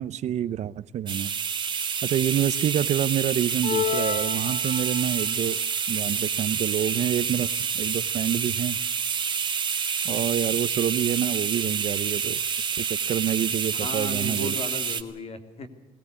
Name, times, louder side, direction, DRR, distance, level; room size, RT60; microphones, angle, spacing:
voice 1, 0.0-1.3 2.0-5.6 5.9-8.8 10.0-14.6, right 10 dB, 55° right, 0.7 m, -27 dB
sound 1, 1.1-15.0, right 6 dB, 35° right, 1.6 m, -28 dB
sound 2, 3.6-5.3, left 9 dB, 65° left, 2.3 m, -30 dB
voice 2, 13.7-15.7, left 3 dB, 50° left, 3.0 m, -36 dB
21.0 x 18.5 x 8.2 m
cardioid pair, 125°, 14 cm